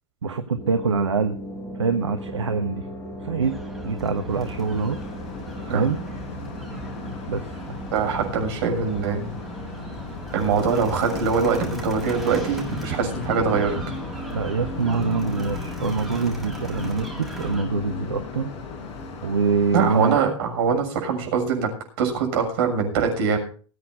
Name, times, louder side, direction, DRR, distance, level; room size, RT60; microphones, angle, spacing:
voice 1, 0.2-1.4 1.7-2.9 3.2-5.0 5.7-6.0 7.3-7.6 14.3-18.5 19.2-20.2, right 4 dB, 75° right, 7 dB, 1.2 m, -25 dB
sound 1, 0.5-16.2, left 1 dB, 20° left, 4.7 m, -40 dB
sound 2, 3.4-17.6, right 2 dB, ahead, 6.9 m, -37 dB
sound 3, 4.3-20.1, left 4 dB, 40° left, 5.0 m, -36 dB
voice 2, 7.9-9.3 10.3-13.8 19.7-21.7 22.0-23.4, right 5 dB, 55° right, 3 dB, 6.7 m, -23 dB
20.5 x 8.4 x 4.8 m, 0.40 s
figure-of-eight pair, 95°, 15 cm